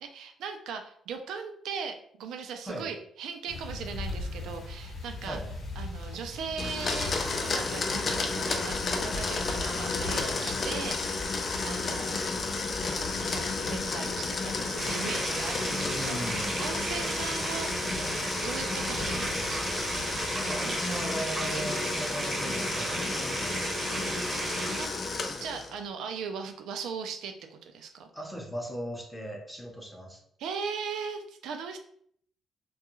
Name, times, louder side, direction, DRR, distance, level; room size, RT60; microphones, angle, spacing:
voice 1, 0.0-5.4 5.8-12.2 13.1-17.9 18.4-19.8 20.6-20.8 24.8-25.1 25.4-28.1 30.4-31.8, right 6 dB, 80° right, 6 dB, 0.3 m, -38 dB
sound 1, 3.5-20.3, left 2 dB, 60° left, 0.8 m, -41 dB
Domestic sounds home sounds, 6.6-25.8, left 3 dB, 45° left, 0.4 m, -32 dB
voice 2, 9.6-10.7 15.7-16.7 20.5-24.3 28.1-30.2, right 1 dB, 5° left, 0 dB, 0.7 m, -38 dB
sound 2, 14.8-24.9, right 2 dB, 35° right, 0.7 m, -34 dB
2.3 x 2.2 x 2.9 m, 0.65 s
cardioid pair, 90°, 0 cm